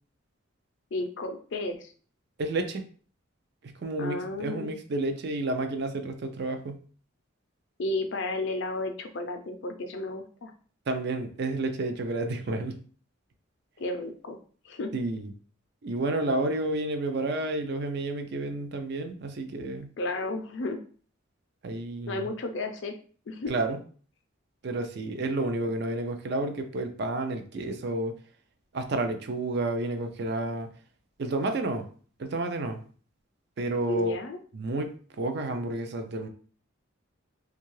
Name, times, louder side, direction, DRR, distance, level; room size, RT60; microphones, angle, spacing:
voice 1, 0.9-1.9 4.0-4.7 7.8-10.5 13.8-14.4 14.6-14.9 20.0-20.8 22.1-22.9 23.3-23.5 33.9-34.4, left 2 dB, 60° left, 6 dB, 0.4 m, -33 dB
voice 2, 2.4-2.8 3.6-6.8 10.9-12.8 14.9-15.3 15.8-19.9 21.6-22.3 23.5-23.8 24.6-28.1 28.7-30.7 31.2-31.9 32.2-32.8 33.6-34.2 34.5-36.3, right 2 dB, 55° right, 7 dB, 0.4 m, -30 dB
2.7 x 2.4 x 3.0 m, 0.42 s
head